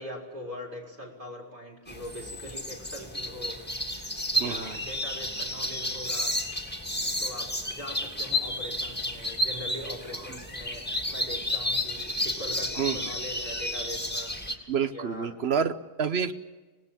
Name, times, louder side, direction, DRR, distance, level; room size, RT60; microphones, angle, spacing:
voice 1, 0.0-3.9 4.3-6.4 7.2-15.3, equal, 45° right, -2 dB, 4.7 m, -42 dB
sound 1, 1.9-14.6, left 1 dB, 10° left, 1.9 m, -32 dB
voice 2, 4.4-4.8 10.3-10.4 12.7-13.1 14.7-16.3, right 6 dB, 65° right, 11 dB, 1.2 m, -29 dB
25.5 x 18.5 x 7.4 m, 1.2 s
omnidirectional pair, 1.2 m